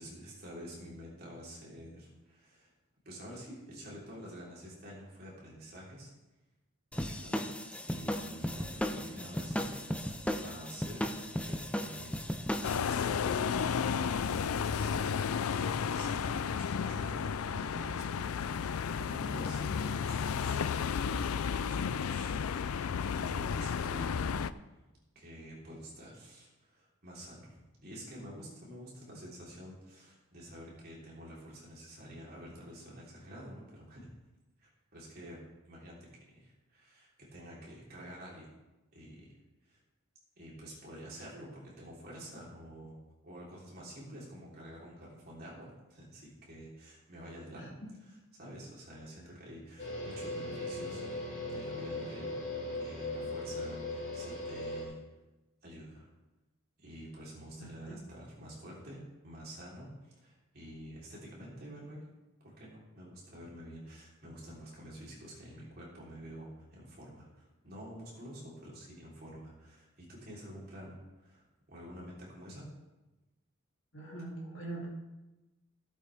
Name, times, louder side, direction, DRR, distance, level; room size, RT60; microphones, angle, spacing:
voice 1, 0.0-2.7 3.1-6.1 6.9-7.4 7.8-14.3 14.7-20.8 21.3-24.4 25.2-34.1 34.6-38.5 38.9-39.4 39.6-39.8 40.4-43.0 43.2-47.8 48.3-52.4 52.7-55.0 55.6-56.1 56.8-62.0 62.4-72.7, equal, 45° right, -5 dB, 3.7 m, -48 dB
sound 1, 6.9-12.8, equal, 5° left, 0.5 m, -36 dB
sound 2, 12.6-24.5, left 6 dB, 85° left, 0.4 m, -33 dB
voice 2, 47.5-47.9 57.6-58.0 73.9-74.9, right 2 dB, 55° left, -4 dB, 2.8 m, -43 dB
sound 3, 49.8-54.8, left 2 dB, 35° left, 3.9 m, -38 dB
15.5 x 8.3 x 3.5 m, 1.1 s
head